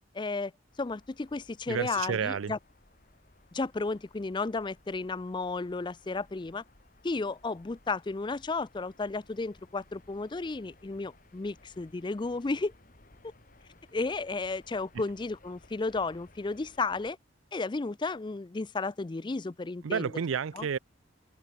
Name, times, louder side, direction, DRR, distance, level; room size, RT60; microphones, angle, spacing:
voice 1, 0.1-0.5 0.8-2.6 3.5-6.6 7.0-12.7 13.9-17.2 17.5-20.1 20.5-20.7, left 3 dB, 25° left, 0.4 m, -33 dB
sound 1, 0.7-17.1, left 2 dB, 45° left, 2.5 m, -60 dB
voice 2, 1.7-2.5 19.8-20.8, right 6 dB, 85° right, 0.5 m, -30 dB
head